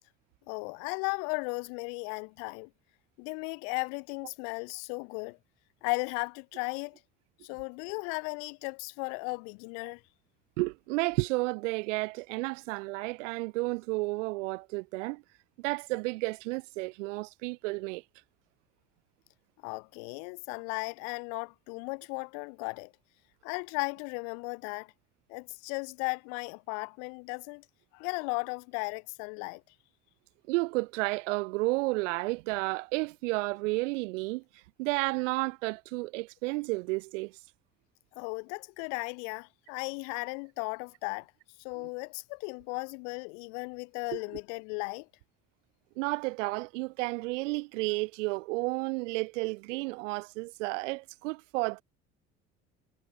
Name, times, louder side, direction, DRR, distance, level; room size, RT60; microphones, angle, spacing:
voice 1, 0.5-2.7 3.2-5.4 5.8-7.0 7.4-10.0 19.6-22.9 23.4-24.9 25.3-27.6 27.9-29.6 38.2-41.3 41.6-45.1, left 40 dB or more, 75° left, 3.9 m, -36 dB
voice 2, 10.6-15.2 15.6-18.0 30.5-34.4 34.8-37.4 44.1-44.2 46.0-51.8, right 25 dB, 75° right, 1.4 m, -32 dB
hypercardioid pair, 65°, 37 cm